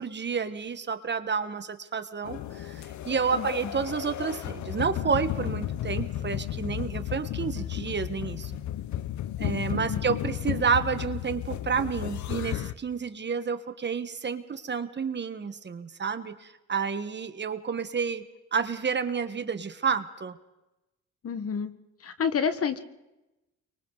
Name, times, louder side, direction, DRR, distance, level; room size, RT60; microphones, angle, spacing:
voice 1, 0.0-8.5 9.4-18.2 18.5-20.4, right 6 dB, 35° right, 10 dB, 1.6 m, -30 dB
sound 1, 2.2-12.7, left 12 dB, 70° left, 1.0 m, -33 dB
voice 2, 21.2-21.7 22.0-22.8, left 6 dB, 50° left, 11 dB, 1.6 m, -28 dB
29.5 x 24.0 x 4.1 m, 0.98 s
cardioid pair, 90°, 30 cm